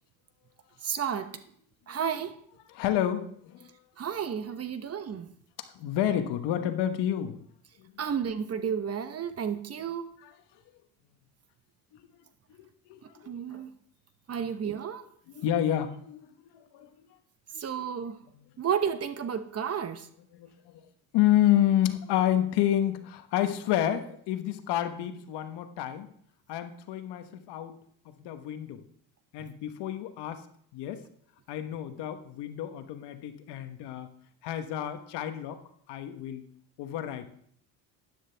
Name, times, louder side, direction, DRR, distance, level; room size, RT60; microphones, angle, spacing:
voice 1, 0.8-1.4 1.9-2.4 4.0-5.3 8.0-10.1 13.0-13.7 14.3-15.0 17.6-18.2 18.6-20.1 29.4-29.5, right 7 dB, 35° right, 0.9 m, -32 dB
voice 2, 2.7-3.7 5.7-7.4 7.8-7.9 10.2-10.3 12.9-13.6 14.4-14.5 15.3-17.1 17.5-17.6 18.3-18.5 20.3-20.5 21.1-26.1 26.5-27.8 28.0-28.8 29.3-30.4 30.7-31.0 31.5-34.1 34.4-35.6 35.9-36.4 36.8-37.3, left 11 dB, 75° left, 1.2 m, -29 dB
12.5 x 9.9 x 3.4 m
cardioid pair, 100°, 41 cm